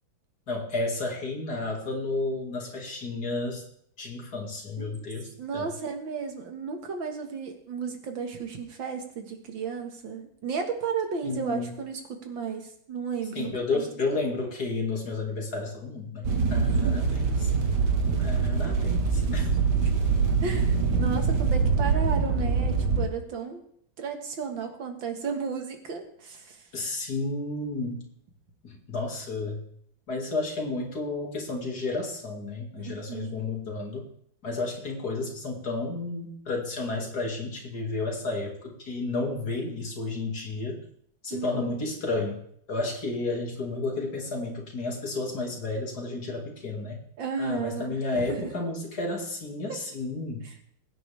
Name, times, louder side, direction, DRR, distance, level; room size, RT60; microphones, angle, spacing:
voice 1, 0.5-3.6 4.0-5.7 11.2-11.8 13.3-17.5 18.2-19.5 26.7-28.1 28.6-29.6 30.1-34.1 34.4-40.8 41.2-42.4 42.7-47.0 47.4-50.5, left 3 dB, 55° left, 0 dB, 3.0 m, -32 dB
voice 2, 5.4-13.8 16.7-17.1 19.3-19.4 19.8-19.9 20.4-23.6 24.0-26.7 32.8-33.4 41.3-41.8 47.2-48.5 49.7-49.8, right 5 dB, 85° right, 5 dB, 2.5 m, -34 dB
sound 1, 16.2-23.1, right 5 dB, 65° right, 1.9 m, -24 dB
21.5 x 9.1 x 3.5 m, 0.67 s
omnidirectional pair, 2.0 m